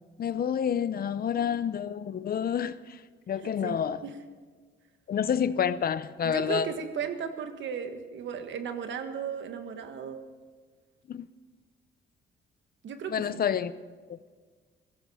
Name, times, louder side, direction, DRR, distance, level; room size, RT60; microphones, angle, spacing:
voice 1, 0.2-2.8 3.3-4.0 5.1-6.7 11.1-11.3 13.1-13.7, left 8 dB, 50° left, 0.7 m, -28 dB
voice 2, 3.4-4.2 6.2-10.2 12.8-13.4, right 6 dB, 70° right, 1.6 m, -36 dB
17.0 x 14.0 x 5.6 m
cardioid pair, 90°, 20 cm